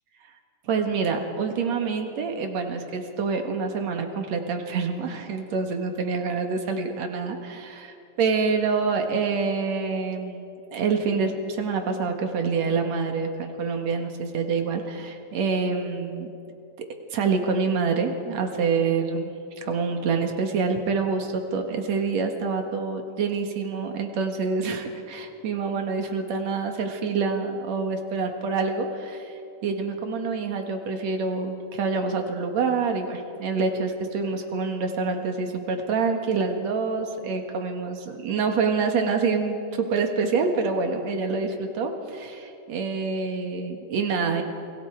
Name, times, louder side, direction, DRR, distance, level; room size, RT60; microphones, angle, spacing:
voice 1, 0.6-16.3 17.1-19.3 19.6-44.4, right 4 dB, 65° right, 4 dB, 2.7 m, -26 dB
29.0 x 22.0 x 4.6 m, 2.6 s
omnidirectional pair, 3.6 m